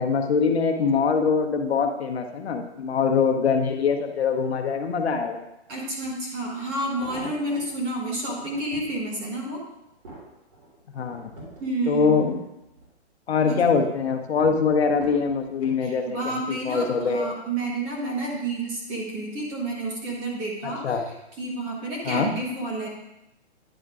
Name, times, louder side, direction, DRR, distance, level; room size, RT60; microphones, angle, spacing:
voice 1, 0.0-5.4 10.9-11.3 11.9-12.4 13.3-17.3 20.6-21.0 22.0-22.3, left 5 dB, 65° left, 4 dB, 1.0 m, -23 dB
voice 2, 5.7-9.6 11.6-12.1 13.4-13.7 15.8-21.0 21.4-22.9, right 2 dB, 15° right, -2 dB, 1.0 m, -30 dB
sound 1, 6.0-6.1 6.7-7.8 8.3-8.9 9.5-12.9 13.3-13.8 14.4-15.8 16.5-16.9 17.2-17.3, right 2 dB, 40° right, 3.2 m, -44 dB
10.0 x 3.6 x 4.8 m, 0.87 s
hypercardioid pair, 165°, 35 cm